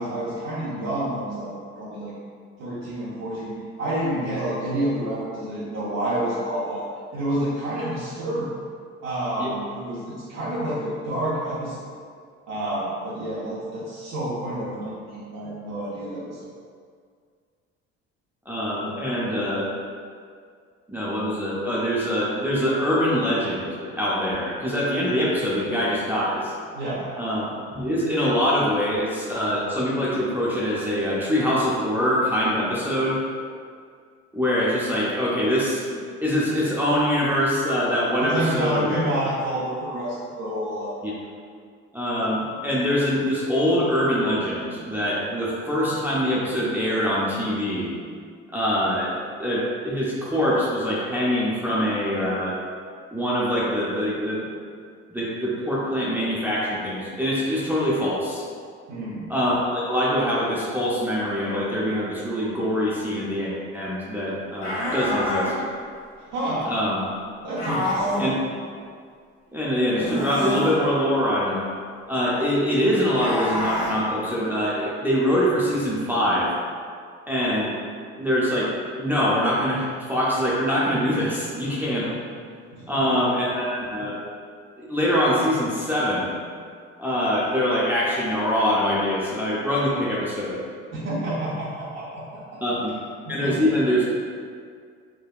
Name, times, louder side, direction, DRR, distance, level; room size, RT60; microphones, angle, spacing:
voice 1, 0.0-2.1 2.6-6.8 7.1-8.5 9.0-11.9 12.5-16.4 26.7-27.1 38.2-40.9 58.9-59.3 66.2-66.7 67.4-68.3 82.7-83.2 90.9-92.4 93.3-93.7, right 1 dB, 60° right, -8 dB, 0.7 m, -29 dB
voice 2, 18.5-19.7 20.9-26.5 27.2-33.2 34.3-39.0 41.0-41.1 41.9-47.9 48.5-49.1 49.4-52.6 53.1-54.4 55.1-58.4 59.3-65.5 66.7-67.0 68.2-68.3 69.5-71.7 72.1-76.5 77.3-77.7 78.2-82.1 82.9-84.2 84.8-86.3 87.0-90.6 92.6-92.9 93.3-94.2, equal, 5° right, -7 dB, 0.6 m, -24 dB
sound 1, 64.6-65.5 67.6-68.3 69.9-70.8 73.1-73.9, left 1 dB, 65° left, 1.2 m, -26 dB
3.4 x 2.2 x 2.3 m, 2.1 s
supercardioid pair, 75°, 30 cm